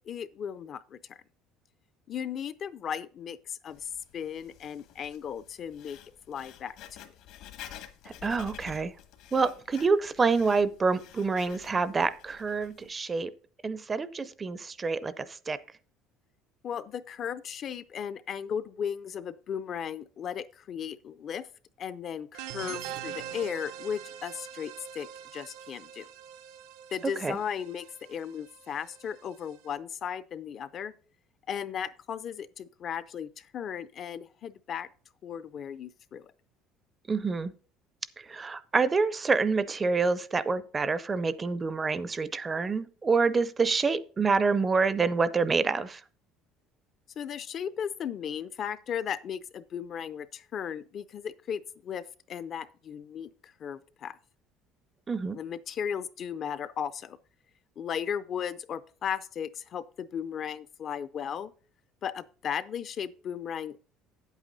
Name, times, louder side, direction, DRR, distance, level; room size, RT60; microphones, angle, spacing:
voice 1, 0.1-1.2 2.1-6.0 6.3-7.1 16.6-21.5 21.8-26.1 26.9-30.9 31.5-34.9 35.2-36.3 47.2-54.2 55.3-57.2 57.8-61.5 62.0-63.8, left 8 dB, 35° left, 0.4 m, -36 dB
Writing, 3.7-12.9, left 11 dB, 65° left, 1.3 m, -50 dB
voice 2, 8.2-8.9 9.3-13.3 13.6-15.6 27.2-27.4 37.1-37.5 38.3-46.0 55.1-55.4, right 4 dB, 20° right, 0.5 m, -27 dB
sound 1, 22.3-29.7, right 10 dB, 85° right, 0.7 m, -43 dB
8.8 x 8.2 x 4.0 m
cardioid pair, 155°, 0 cm